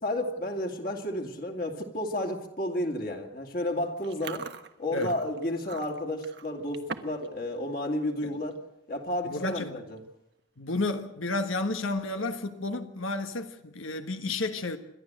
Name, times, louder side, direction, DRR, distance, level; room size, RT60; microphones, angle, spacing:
voice 1, 0.0-4.5 4.8-8.6 8.9-10.0, left 1 dB, 45° left, 2.5 m, -32 dB
Chewing mastication, 4.0-7.3 7.6-7.9 8.3-8.6 9.3-9.4 9.6-10.0 10.4-10.5 11.9-12.5, right 4 dB, 55° right, 1.2 m, -42 dB
voice 2, 9.2-9.8 10.6-14.8, left 2 dB, 85° left, 1.4 m, -31 dB
28.0 x 12.0 x 7.7 m
head